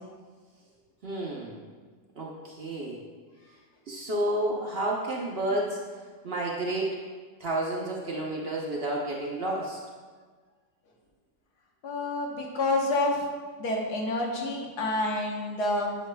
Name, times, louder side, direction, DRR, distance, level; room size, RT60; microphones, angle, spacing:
voice 1, 1.0-1.6 2.2-3.0 3.9-5.8 6.2-6.9 7.4-9.8, right 1 dB, 50° right, -2 dB, 0.8 m, -30 dB
voice 2, 11.8-13.3 13.6-15.9, left 2 dB, 80° left, -1 dB, 1.6 m, -28 dB
8.0 x 7.6 x 2.2 m, 1.5 s
omnidirectional pair, 1.7 m